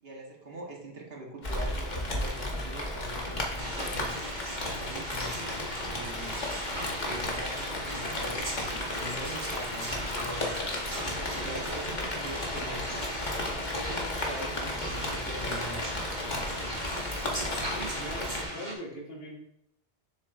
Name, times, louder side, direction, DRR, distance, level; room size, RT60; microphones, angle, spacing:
voice 1, 0.0-5.4 5.8-6.4 7.0-10.7 10.9-16.9, right 1 dB, 65° right, 0 dB, 1.5 m, -43 dB
Rain, 1.4-18.4, left 1 dB, 45° left, 1.3 m, -34 dB
Water / Liquid, 3.2-3.3 3.7-12.3, left 5 dB, 90° left, 1.0 m, -47 dB
sound 1, 3.6-18.7, right 1 dB, 45° right, 1.5 m, -39 dB
voice 2, 17.5-19.4, equal, 65° left, -1 dB, 1.6 m, -41 dB
7.1 x 6.6 x 2.5 m, 0.77 s
omnidirectional pair, 1.1 m